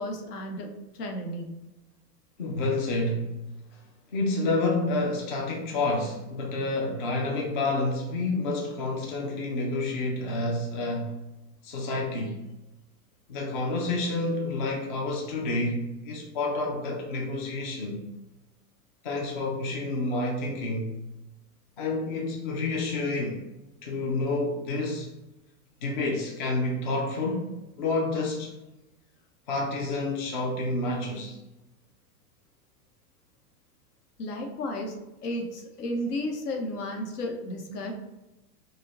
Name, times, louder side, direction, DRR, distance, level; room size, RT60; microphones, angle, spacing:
voice 1, 0.0-1.5 34.2-34.9 35.2-37.9, left 1 dB, 80° left, 1.1 m, -33 dB
voice 2, 2.4-3.4 3.7-3.8 4.1-11.2 11.6-12.4 13.3-18.0 19.0-21.0 21.8-23.4 23.8-25.1 25.8-28.6 29.5-31.4, left 2 dB, 35° left, 0.4 m, -29 dB
5.1 x 2.1 x 4.0 m
supercardioid pair, 180°, 46 cm